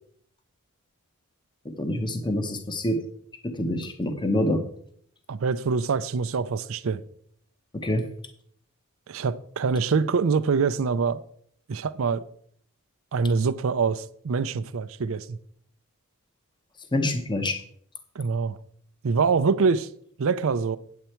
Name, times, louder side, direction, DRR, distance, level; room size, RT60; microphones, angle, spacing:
voice 1, 1.8-3.0 3.4-4.6 7.8-8.0 16.9-17.6, left 1 dB, 20° left, 0.9 m, -26 dB
voice 2, 5.3-7.0 9.1-11.2 11.7-12.2 13.1-15.4 18.2-18.6 19.0-19.9 20.2-20.8, right 5 dB, 65° right, 0.5 m, -25 dB
8.9 x 8.2 x 4.4 m
head